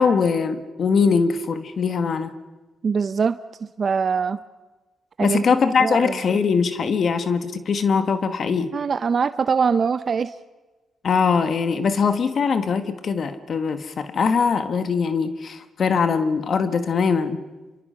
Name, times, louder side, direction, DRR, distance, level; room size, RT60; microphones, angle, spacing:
voice 1, 0.0-2.3 5.2-8.7 11.0-17.4, left 5 dB, 55° left, 10 dB, 1.4 m, -21 dB
voice 2, 2.8-3.4 3.6-4.4 5.2-5.4 5.8-6.2 8.7-10.3, right 5 dB, 50° right, 13 dB, 0.6 m, -22 dB
27.0 x 23.0 x 5.6 m, 1.2 s
cardioid pair, 80°, 0 cm